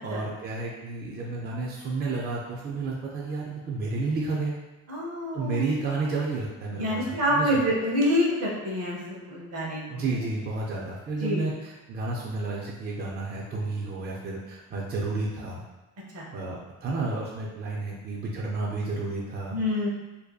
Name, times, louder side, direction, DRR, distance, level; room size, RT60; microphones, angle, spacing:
voice 1, 0.0-4.6 5.3-7.6 9.9-15.6 16.3-19.6, right 3 dB, 35° right, -3 dB, 0.4 m, -31 dB
voice 2, 4.9-5.6 6.8-10.3 11.2-11.4 16.1-16.3 19.5-19.9, equal, 55° right, -3 dB, 0.8 m, -27 dB
2.6 x 2.2 x 2.3 m, 1.1 s
cardioid pair, 90°, 30 cm